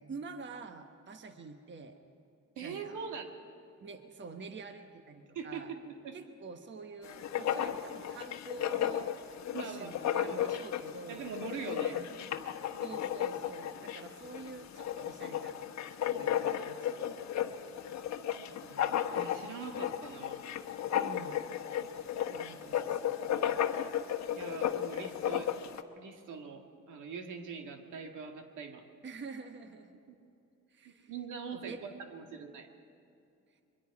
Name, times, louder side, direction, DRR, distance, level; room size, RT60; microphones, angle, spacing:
voice 1, 0.0-2.0 2.6-3.0 3.8-5.7 6.1-9.3 9.6-11.3 12.8-15.6 16.1-16.9 20.9-21.4 22.3-23.9 29.0-29.9 30.7-31.1 31.5-31.8, right 4 dB, 40° right, 6 dB, 1.3 m, -47 dB
voice 2, 2.6-3.3 5.3-6.2 9.5-10.5 11.1-12.1 18.4-20.4 24.3-25.5 26.0-28.8 30.1-30.2 30.8-32.7, right 5 dB, 80° right, 4 dB, 2.0 m, -43 dB
Writing, 7.0-25.8, left 10 dB, 65° left, 1.1 m, -34 dB
24.0 x 22.5 x 4.8 m, 2.6 s
cardioid pair, 90°, 30 cm